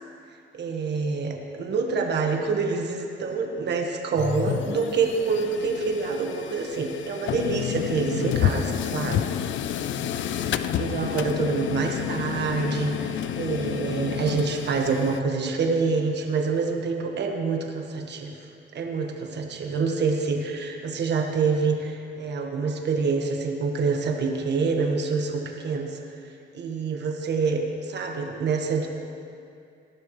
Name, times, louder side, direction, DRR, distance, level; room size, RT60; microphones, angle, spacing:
voice 1, 0.5-9.3 10.8-18.5 18.7-26.0 26.5-28.9, right 4 dB, 60° right, 2 dB, 1.4 m, -26 dB
sound 1, 4.2-15.2, left 10 dB, 70° left, 0.5 m, -30 dB
19.0 x 12.0 x 3.2 m, 2.5 s
cardioid pair, 90°, 20 cm